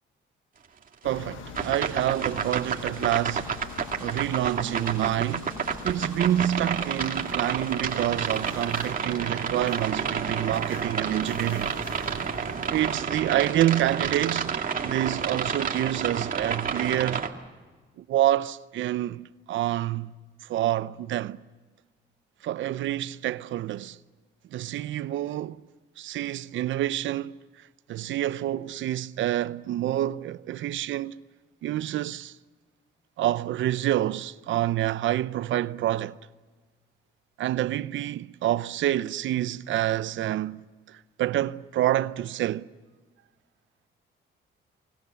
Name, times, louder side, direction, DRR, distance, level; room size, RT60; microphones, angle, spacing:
sound 1, 1.0-13.0, left 9 dB, 80° left, 1.3 m, -44 dB
voice 1, 1.0-3.5 4.0-5.5 5.8-11.7 12.7-17.2 18.0-20.1 20.4-21.4 22.4-24.0 24.5-25.7 26.0-27.4 27.9-31.2 31.6-32.4 33.2-36.2 37.4-42.7, right 13 dB, 75° right, 0.7 m, -27 dB
sound 2, 1.6-17.3, right 6 dB, 45° right, 2.3 m, -30 dB
sound 3, 4.2-12.8, right 3 dB, 20° right, 2.4 m, -47 dB
30.0 x 21.0 x 7.0 m
cardioid pair, 90°, 20 cm